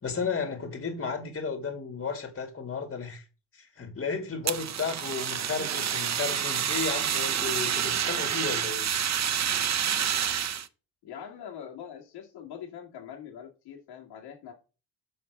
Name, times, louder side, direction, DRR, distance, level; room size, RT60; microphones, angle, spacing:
voice 1, 0.0-3.2 3.5-8.9, left 5 dB, 30° left, 2.2 m, -33 dB
Fire, 4.4-10.7, right 9 dB, 45° right, 0.9 m, -28 dB
voice 2, 11.0-14.5, left 8 dB, 80° left, 2.3 m, -43 dB
6.6 x 5.2 x 5.9 m
supercardioid pair, 70°, 40 cm